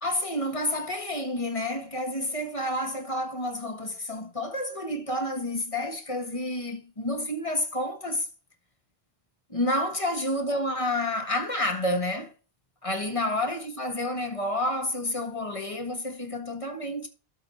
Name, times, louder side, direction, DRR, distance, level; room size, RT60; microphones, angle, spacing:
voice 1, 0.0-8.3 9.5-12.3 12.8-17.1, left 1 dB, 30° left, 1.7 m, -29 dB
13.0 x 4.8 x 4.3 m
omnidirectional pair, 1.1 m